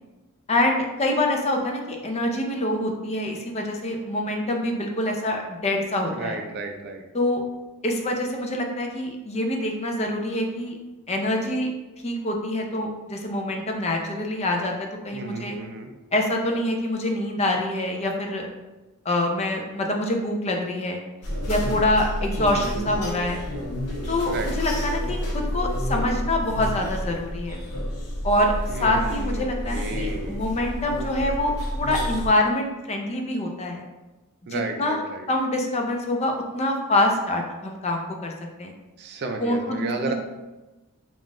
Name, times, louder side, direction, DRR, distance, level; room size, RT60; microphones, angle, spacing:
voice 1, 0.5-6.4 7.1-7.4 7.8-10.8 11.1-11.7 12.0-15.6 16.1-18.5 19.0-21.0 21.5-23.4 24.1-27.6 28.2-33.8 34.5-35.0 35.3-38.3 38.6-38.7 39.4-40.1, left 1 dB, 30° left, 2 dB, 0.5 m, -25 dB
voice 2, 6.1-7.0 15.1-15.9 24.2-24.5 28.7-29.4 29.7-30.4 34.5-35.3 39.0-40.1, right 3 dB, 50° right, 4 dB, 0.4 m, -32 dB
sound 1, 21.2-32.3, equal, 80° left, 0.9 m, -29 dB
3.8 x 2.4 x 3.6 m, 1.1 s
head